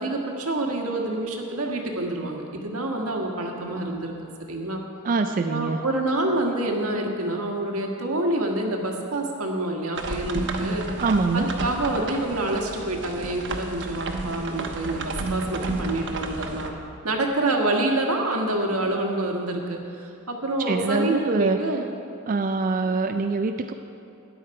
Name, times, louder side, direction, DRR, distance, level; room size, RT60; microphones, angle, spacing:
voice 1, 0.0-4.1 4.5-4.8 5.5-10.9 11.3-16.7 17.0-19.8 20.3-21.8, right 2 dB, 85° right, 1 dB, 1.5 m, -27 dB
voice 2, 5.0-5.8 11.0-11.5 20.6-21.6 22.3-23.7, right 3 dB, 40° right, 6 dB, 0.4 m, -24 dB
sound 1, 9.9-16.7, right 2 dB, 60° right, 1.1 m, -31 dB
13.0 x 10.5 x 4.7 m, 2.6 s
head